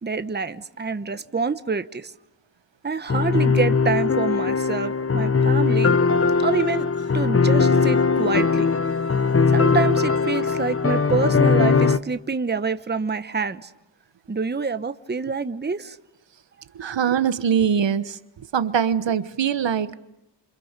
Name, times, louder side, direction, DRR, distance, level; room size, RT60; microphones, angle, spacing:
voice 1, 0.0-2.1 2.8-6.0 6.4-6.9 7.1-8.7 9.5-13.7 14.3-16.0, right 4 dB, 25° right, 1.0 m, -26 dB
sound 1, 3.1-12.0, left 5 dB, 30° left, 1.0 m, -20 dB
voice 2, 16.7-18.2 18.5-19.9, right 7 dB, 80° right, 1.3 m, -22 dB
29.5 x 27.5 x 6.7 m
wide cardioid pair, 115°, 43 cm